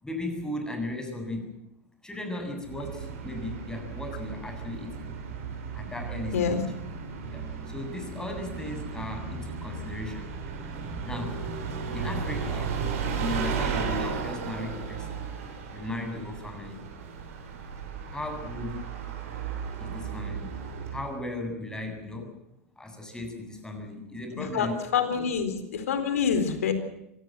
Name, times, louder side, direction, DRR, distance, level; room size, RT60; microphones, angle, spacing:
voice 1, 0.0-1.5 2.0-5.2 5.7-6.6 7.3-10.3 11.0-11.4 11.9-12.8 13.2-15.2 15.7-16.8 18.1-18.8 19.8-20.5 20.9-22.3 22.8-24.7 25.1-25.2, left 1 dB, 10° left, 5 dB, 7.5 m, -36 dB
Bus, 2.6-21.2, right 6 dB, 75° right, 7.7 m, -35 dB
voice 2, 24.3-26.7, left 6 dB, 80° left, 9 dB, 4.1 m, -27 dB
25.0 x 18.0 x 7.7 m, 0.84 s
hypercardioid pair, 95°, 8 cm